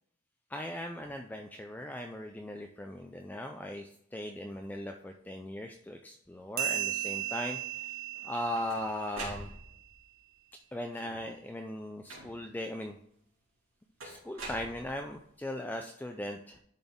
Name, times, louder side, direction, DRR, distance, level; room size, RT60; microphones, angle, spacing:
voice 1, 0.5-7.9 8.2-9.5 10.7-13.0 14.0-16.6, left 1 dB, 10° left, 4 dB, 0.3 m, -39 dB
sound 1, 6.6-9.6, right 11 dB, 50° right, 1.2 m, -36 dB
sound 2, 8.1-10.0 10.8-11.4 12.1-12.6 14.0-15.3, right 2 dB, 85° right, 2.5 m, -45 dB
10.5 x 4.1 x 3.6 m, 0.69 s
head